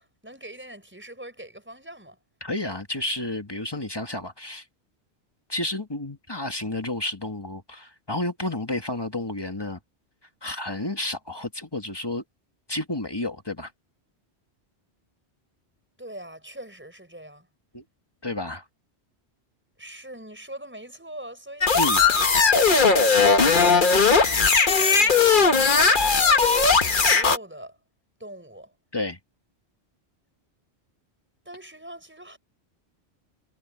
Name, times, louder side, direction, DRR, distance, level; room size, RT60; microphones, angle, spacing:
voice 1, 0.0-2.2 16.0-17.5 19.8-24.5 24.8-26.6 26.8-27.8 28.2-28.7 31.4-32.4, right 1 dB, 10° right, 6.4 m, -42 dB
voice 2, 2.4-4.6 5.5-9.8 10.4-12.2 12.7-13.7 17.7-17.8 18.2-18.6 21.8-22.0 28.9-29.2, left 1 dB, 20° left, 1.6 m, -31 dB
sound 1, 21.6-27.4, left 4 dB, 50° left, 1.4 m, -18 dB
omnidirectional pair, 1.1 m